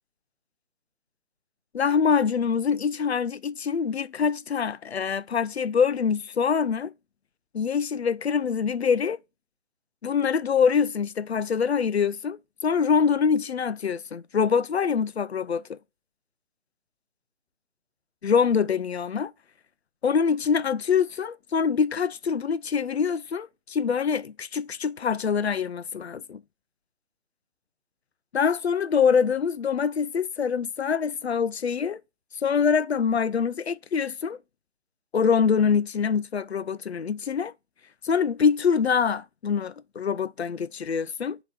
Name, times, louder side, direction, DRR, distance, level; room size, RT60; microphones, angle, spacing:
voice 1, 1.7-6.9 7.5-9.2 10.0-15.8 18.2-19.3 20.0-26.4 28.3-32.0 32.4-34.4 35.1-37.5 38.0-41.4, left 6 dB, 65° left, 0.5 m, -24 dB
8.3 x 3.0 x 5.2 m
figure-of-eight pair, 145°, 35 cm